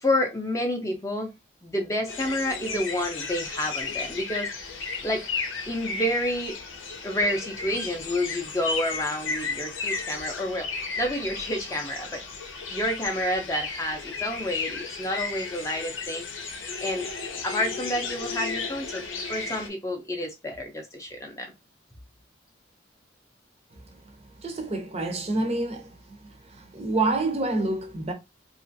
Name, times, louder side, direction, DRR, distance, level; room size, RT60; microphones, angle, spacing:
voice 1, 0.0-1.3 1.6-4.5 5.0-5.2 5.7-6.6 7.0-10.7 11.0-12.2 12.7-16.3 16.8-17.1 17.4-19.0 19.3-21.5, left 1 dB, 15° left, 0.5 m, -29 dB
sound 1, 2.1-19.7, left 4 dB, 85° left, 0.7 m, -34 dB
voice 2, 24.4-26.2 26.4-28.1, right 2 dB, 30° right, 0.5 m, -28 dB
2.9 x 2.4 x 2.6 m
head